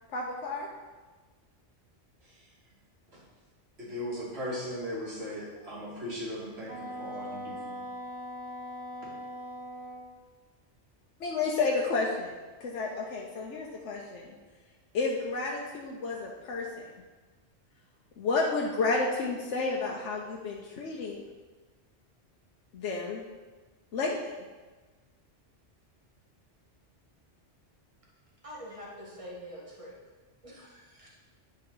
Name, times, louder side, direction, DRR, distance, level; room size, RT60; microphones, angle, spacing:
voice 1, 0.1-0.7 11.2-12.3 12.6-14.3 14.9-16.9 18.2-21.2 22.7-23.2 23.9-24.3, left 3 dB, 85° left, -2 dB, 1.1 m, -31 dB
voice 2, 3.8-7.8, equal, 60° right, -7 dB, 2.5 m, -38 dB
Wind instrument woodwind instrument, 6.7-10.1, equal, 85° right, 3.0 m, -40 dB
voice 3, 28.4-29.9 30.4-31.1, equal, 30° right, -4 dB, 1.7 m, -45 dB
10.0 x 4.3 x 3.9 m, 1.3 s
omnidirectional pair, 1.2 m